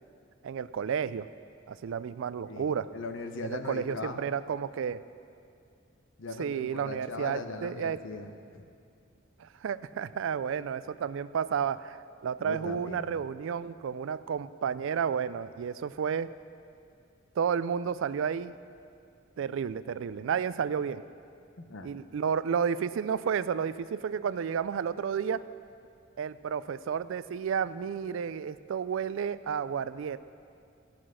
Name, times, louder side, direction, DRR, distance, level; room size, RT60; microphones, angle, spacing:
voice 1, 0.4-1.3 1.7-2.9 3.4-5.0 6.4-8.0 9.4-16.3 17.4-18.5 19.4-21.0 21.8-25.4 26.2-30.2, right 7 dB, 70° right, 15 dB, 0.3 m, -31 dB
voice 2, 2.5-4.2 6.2-8.7 12.4-13.0 21.7-21.9, left 3 dB, 70° left, 6 dB, 0.8 m, -39 dB
16.0 x 6.0 x 6.2 m, 2.5 s
head